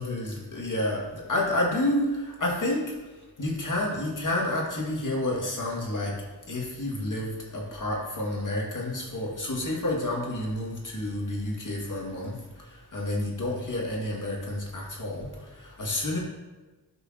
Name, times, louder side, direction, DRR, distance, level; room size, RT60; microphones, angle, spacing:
voice 1, 0.0-2.9 3.4-6.1 6.5-16.2, left 1 dB, 45° left, -2 dB, 2.3 m, -30 dB
12.5 x 5.4 x 3.0 m, 1.2 s
cardioid pair, 70°, 43 cm